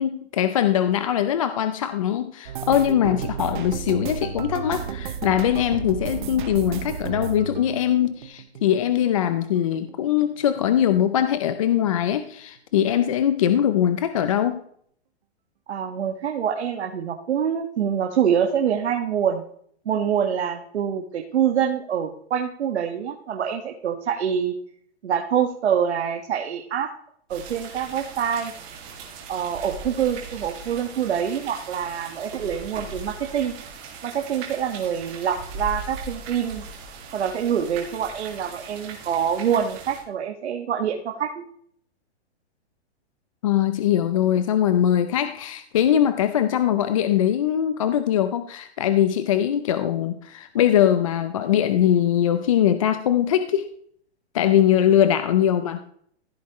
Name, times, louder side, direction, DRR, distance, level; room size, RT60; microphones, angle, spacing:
voice 1, 0.0-14.6 43.4-53.7 54.3-55.8, left 10 dB, 30° left, 11 dB, 0.5 m, -21 dB
sound 1, 2.5-9.3 9.6-10.6 10.9-11.2 11.6-11.8, right 7 dB, 50° right, 1.0 m, -33 dB
voice 2, 15.7-19.4 19.8-24.6 25.0-26.9 27.3-28.5 29.3-33.5 34.0-36.6 37.1-41.4 54.8-54.9, right 8 dB, 85° right, 3 dB, 1.7 m, -25 dB
sound 2, 27.3-40.0, right 4 dB, 25° right, 2.4 m, -39 dB
15.0 x 8.3 x 3.1 m, 0.62 s
hypercardioid pair, 175°, 33 cm